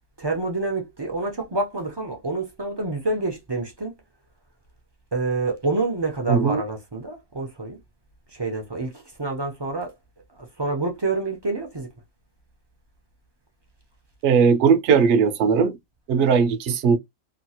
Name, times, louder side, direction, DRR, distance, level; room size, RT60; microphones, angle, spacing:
voice 1, 0.2-4.0 5.1-7.8 8.3-10.0 10.3-11.9, right 3 dB, 40° right, 0.3 m, -27 dB
voice 2, 6.3-6.6 14.2-15.8 16.1-17.0, right 6 dB, 65° right, 0.8 m, -18 dB
2.9 x 2.3 x 2.7 m
omnidirectional pair, 1.5 m